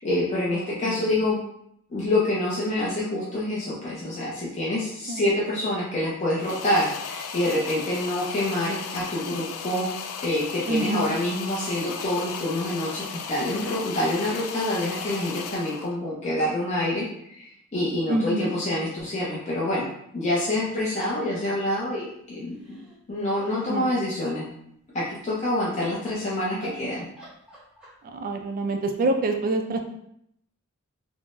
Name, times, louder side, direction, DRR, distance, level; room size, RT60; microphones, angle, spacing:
voice 1, 0.0-1.4 1.9-9.9 10.2-19.9 20.1-22.8 23.1-24.5 24.9-27.1, left 1 dB, 30° left, -7 dB, 0.6 m, -27 dB
voice 2, 0.5-1.2 5.1-5.2 10.7-11.1 18.1-18.5 23.6-24.0 28.1-29.8, right 2 dB, 40° right, 4 dB, 0.3 m, -27 dB
sound 1, 6.4-16.0, left 6 dB, 90° left, 0.3 m, -36 dB
sound 2, 22.5-23.9 26.0-26.2 26.6-28.2, right 2 dB, 5° right, 0.8 m, -45 dB
3.6 x 2.0 x 2.5 m, 0.73 s
head